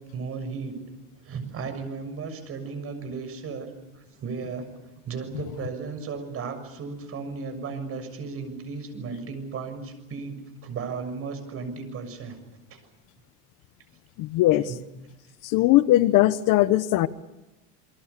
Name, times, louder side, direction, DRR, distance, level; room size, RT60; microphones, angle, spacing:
voice 1, 0.1-0.7 1.2-4.7 5.0-10.4 10.6-12.4 12.7-12.8 14.7-14.8, right 5 dB, 35° right, 8 dB, 6.8 m, -35 dB
voice 2, 14.2-14.7 15.4-17.1, left 15 dB, 55° left, 13 dB, 1.3 m, -20 dB
29.0 x 23.0 x 6.9 m, 1.0 s
cardioid pair, 145°, 37 cm